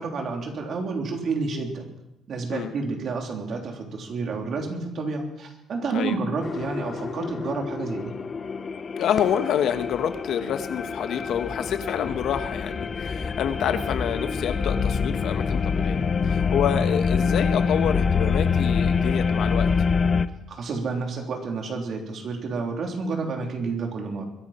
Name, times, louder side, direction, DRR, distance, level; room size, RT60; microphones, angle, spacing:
voice 1, 0.0-1.8 2.3-8.1 20.5-24.3, right 4 dB, 50° right, 1 dB, 3.4 m, -30 dB
sound 1, 6.4-20.3, left 5 dB, 35° left, 0.7 m, -26 dB
voice 2, 9.0-19.7, left 9 dB, 65° left, 9 dB, 1.2 m, -27 dB
22.5 x 11.0 x 4.4 m, 0.87 s
cardioid pair, 120°, 0 cm